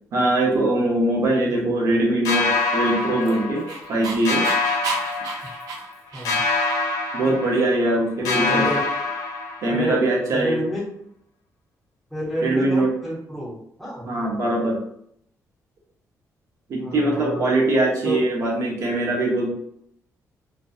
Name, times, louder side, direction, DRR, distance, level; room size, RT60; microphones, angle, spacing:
voice 1, 0.1-4.5 7.1-8.7 9.6-10.6 12.4-12.9 14.0-14.8 16.7-19.5, right 1 dB, 55° right, -2 dB, 0.7 m, -22 dB
sound 1, 2.3-4.0 4.3-5.9 6.3-8.0 8.3-9.9, left 3 dB, 70° left, 0.5 m, -25 dB
Dog, 2.8-6.6, right 3 dB, 90° right, 0.5 m, -33 dB
voice 2, 6.1-6.4 8.2-8.8 9.7-10.8 12.1-14.1 16.8-17.5 18.0-18.3, equal, ahead, -6 dB, 0.8 m, -30 dB
2.5 x 2.1 x 2.4 m, 0.71 s
cardioid pair, 165°, 6 cm